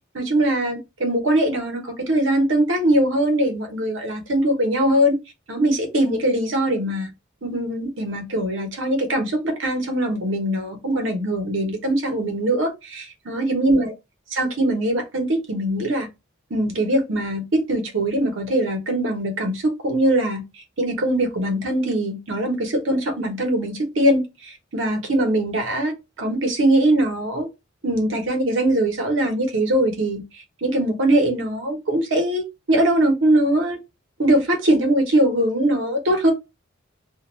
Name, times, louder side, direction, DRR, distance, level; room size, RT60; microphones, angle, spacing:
voice 1, 0.1-5.1 5.5-7.1 7.4-13.9 14.3-16.1 16.5-25.9 26.2-27.5 27.8-33.8 34.2-36.3, right 1 dB, 70° right, 0.8 m, -21 dB
2.2 x 2.2 x 2.9 m
head